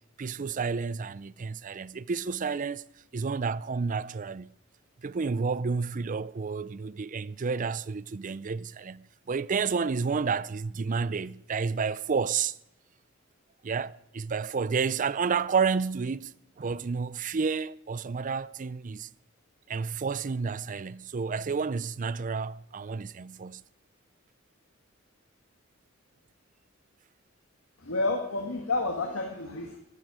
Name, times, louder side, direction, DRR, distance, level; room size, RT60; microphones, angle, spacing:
voice 1, 0.2-2.9 3.1-4.5 5.0-12.5 13.6-16.3 16.6-19.1 19.7-23.6, right 5 dB, 40° right, 0.5 m, -30 dB
voice 2, 27.8-29.8, left 2 dB, 85° left, 1.7 m, -30 dB
15.5 x 12.5 x 5.0 m
head